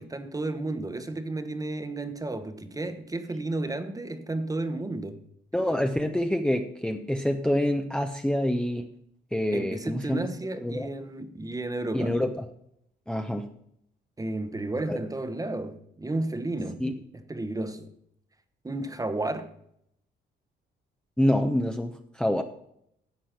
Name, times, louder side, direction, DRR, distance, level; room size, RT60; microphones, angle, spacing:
voice 1, 0.0-5.2 9.5-12.2 14.2-16.8 17.1-17.9 18.6-19.5, right 2 dB, 15° right, 1.1 m, -32 dB
voice 2, 5.5-8.9 9.3-10.3 10.6-10.9 11.9-12.5 13.1-13.5 14.9-15.0 16.8-16.9 21.2-22.4, left 1 dB, 5° left, 0.8 m, -26 dB
11.5 x 7.5 x 5.9 m
cardioid pair, 90°, 20 cm